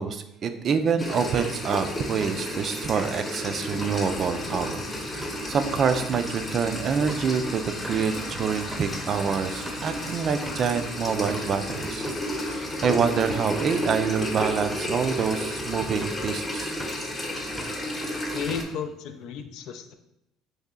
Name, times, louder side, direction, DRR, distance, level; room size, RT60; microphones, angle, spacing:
voice 1, 0.0-4.8 5.1-12.1 12.5-16.8, right 6 dB, 45° right, 9 dB, 0.3 m, -26 dB
sound 1, 1.0-18.6, left 1 dB, 25° left, 0.8 m, -32 dB
sound 2, 1.3-7.3 7.7-8.0 8.4-8.5 8.7-8.9 9.4-9.9 10.5-10.8 11.3-11.6 12.1-12.3 12.8-13.0 13.5-13.9 14.2-14.6 15.2-15.5 16.0-16.3 16.6-17.1 17.4-17.9 18.2-18.9, right 1 dB, 15° right, 0.7 m, -42 dB
sound 3, 3.5-16.8, left 1 dB, 85° left, 0.9 m, -44 dB
voice 2, 18.3-19.9, left 7 dB, 70° left, 7 dB, 0.4 m, -34 dB
3.1 x 2.8 x 3.6 m, 0.83 s
supercardioid pair, 90°, 0 cm